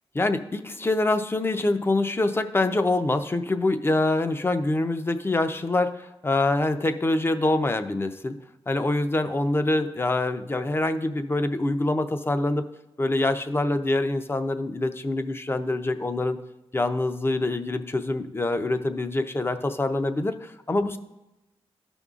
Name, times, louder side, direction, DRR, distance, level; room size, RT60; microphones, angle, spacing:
voice 1, 0.1-8.3 8.7-12.7 13.0-16.4 16.7-21.0, left 2 dB, 20° left, 9 dB, 0.6 m, -25 dB
13.5 x 5.3 x 2.4 m, 0.95 s
cardioid pair, 80°, 10 cm